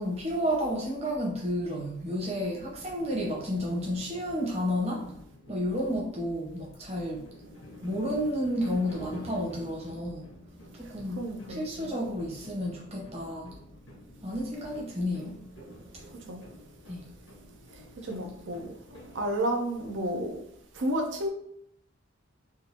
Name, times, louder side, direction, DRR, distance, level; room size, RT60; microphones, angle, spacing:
voice 1, 0.0-5.1 5.5-7.2 7.8-10.2 10.7-13.5 14.2-15.4 16.9-17.1 18.1-18.3, equal, 30° right, -3 dB, 1.0 m, -31 dB
sound 1, 2.4-19.3, equal, 85° left, 1.1 m, -50 dB
voice 2, 11.2-11.9 16.3-16.4 18.0-18.7 19.1-20.4 20.7-21.3, right 1 dB, 65° right, 3 dB, 0.6 m, -31 dB
3.7 x 2.5 x 2.8 m, 0.73 s
head